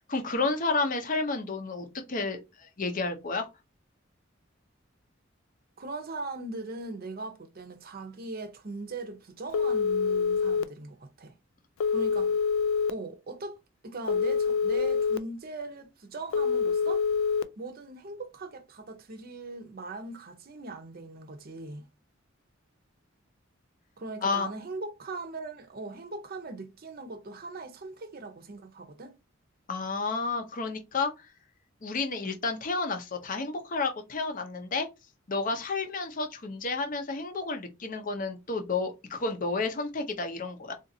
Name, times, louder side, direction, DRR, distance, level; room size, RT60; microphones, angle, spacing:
voice 1, 0.0-3.5 24.2-24.5 29.7-31.3 31.8-34.9 35.3-40.7, left 3 dB, 40° left, 0.6 m, -31 dB
voice 2, 5.8-11.3 11.9-12.3 12.9-13.6 13.8-17.0 17.6-21.9 24.0-29.2, right 3 dB, 45° right, 0.6 m, -40 dB
Telephone, 9.5-10.6 11.8-12.9 14.1-15.2 16.3-17.4, left 5 dB, 75° left, 0.3 m, -26 dB
3.8 x 2.5 x 2.6 m
head